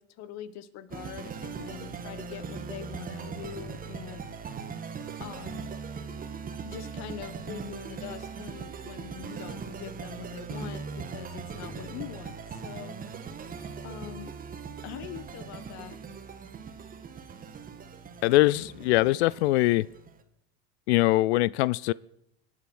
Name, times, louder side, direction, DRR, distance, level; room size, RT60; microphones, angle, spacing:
voice 1, 0.0-4.3 5.2-5.7 6.6-12.9 13.8-14.3 14.8-16.0, left 11 dB, 55° left, 1.4 m, -43 dB
sound 1, 0.9-20.2, right 5 dB, 25° right, 1.6 m, -40 dB
voice 2, 18.2-19.9 20.9-21.9, left 18 dB, 80° left, 0.5 m, -22 dB
23.5 x 8.5 x 6.2 m
supercardioid pair, 105°, 32 cm